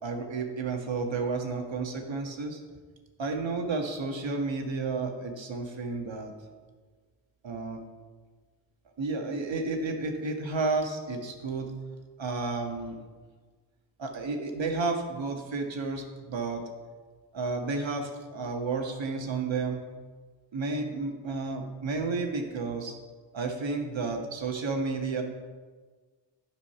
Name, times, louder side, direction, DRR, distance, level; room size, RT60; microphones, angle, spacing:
voice 1, 0.0-2.6 3.2-6.3 7.4-7.8 9.0-11.7 12.2-13.0 14.0-16.6 17.3-19.8 20.5-22.9 23.3-25.2, right 3 dB, 70° right, 3 dB, 1.5 m, -31 dB
9.7 x 5.0 x 5.8 m, 1.4 s
cardioid pair, 50°, 47 cm